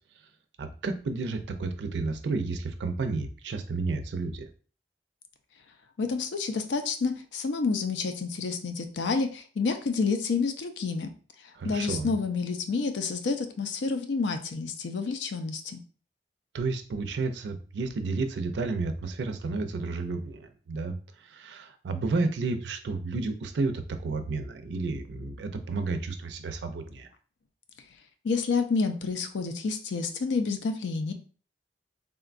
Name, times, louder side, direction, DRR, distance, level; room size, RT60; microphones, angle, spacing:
voice 1, 0.6-4.5 11.5-12.1 16.5-21.0 21.2-27.1, right 3 dB, 80° right, 8 dB, 0.4 m, -31 dB
voice 2, 6.0-11.1 11.6-15.8 28.2-31.1, left 4 dB, 85° left, 7 dB, 0.4 m, -29 dB
3.6 x 2.2 x 2.5 m, 0.40 s
head